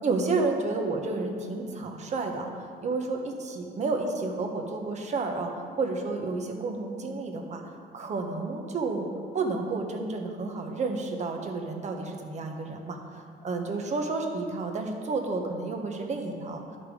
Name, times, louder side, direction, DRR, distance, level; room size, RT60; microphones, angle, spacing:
voice 1, 0.0-7.6 7.9-9.1 9.3-13.0 13.4-16.6, right 3 dB, 45° right, 3 dB, 1.3 m, -31 dB
11.5 x 5.8 x 4.9 m, 2.2 s
cardioid pair, 110°, 17 cm